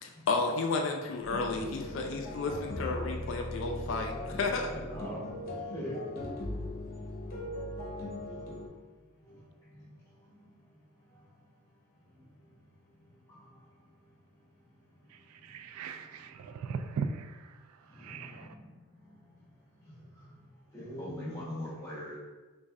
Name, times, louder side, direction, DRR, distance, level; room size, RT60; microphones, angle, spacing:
voice 1, 0.0-4.7, left 3 dB, 60° left, 3 dB, 0.3 m, -32 dB
sound 1, 1.2-8.7, left 1 dB, 45° left, 0.7 m, -39 dB
voice 2, 4.9-5.2 5.7-6.0 20.7-22.2, left 1 dB, 15° left, -7 dB, 1.1 m, -39 dB
voice 3, 15.1-17.6 17.9-18.6, right 5 dB, 90° right, 12 dB, 0.3 m, -39 dB
3.1 x 2.6 x 3.6 m, 1.3 s
head